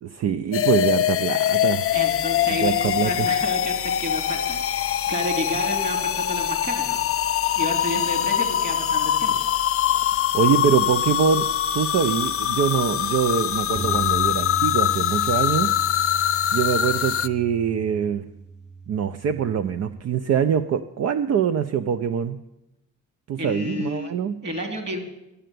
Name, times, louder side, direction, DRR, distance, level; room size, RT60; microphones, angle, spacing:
voice 1, 0.0-1.9 2.6-3.3 10.3-15.8 16.1-18.3 18.9-22.4 23.3-24.4, right 7 dB, 55° right, 10 dB, 0.5 m, -24 dB
sound 1, 0.5-17.3, left 11 dB, 50° left, 0.5 m, -23 dB
sound 2, 1.8-17.6, left 1 dB, 85° right, 1.1 m, -45 dB
voice 2, 1.9-7.0 7.6-9.5 23.4-24.1 24.4-25.0, equal, 35° right, 5 dB, 2.8 m, -31 dB
Bass guitar, 13.8-20.0, right 5 dB, 5° right, 0.5 m, -36 dB
11.5 x 6.8 x 9.2 m, 0.92 s
cardioid pair, 90°, 30 cm